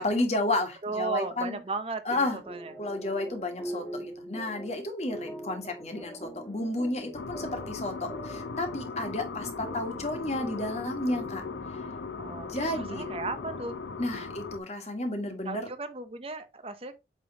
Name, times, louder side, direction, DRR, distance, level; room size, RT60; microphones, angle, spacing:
voice 1, 0.0-1.6 2.0-2.4 2.8-11.4 12.3-13.0 14.0-15.7, left 2 dB, 40° left, 1.6 m, -32 dB
voice 2, 0.8-2.0 2.3-2.7 12.2-13.8 15.4-17.0, right 3 dB, 35° right, 0.7 m, -35 dB
sound 1, 2.1-13.9, right 1 dB, 20° left, 1.5 m, -44 dB
sound 2, 7.1-14.6, left 4 dB, 85° left, 0.6 m, -38 dB
8.5 x 3.4 x 3.9 m
head